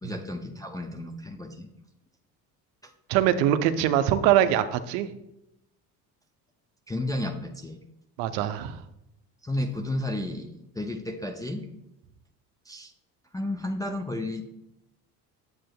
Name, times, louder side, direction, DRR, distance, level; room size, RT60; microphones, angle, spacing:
voice 1, 0.0-1.7 2.8-2.9 6.9-7.8 9.4-11.7 12.7-12.9 13.3-14.5, left 1 dB, 10° left, 3 dB, 0.3 m, -32 dB
voice 2, 3.1-5.1 8.2-8.8, right 11 dB, 75° right, 11 dB, 0.7 m, -23 dB
7.8 x 7.5 x 2.2 m, 0.84 s
hypercardioid pair, 65°, 49 cm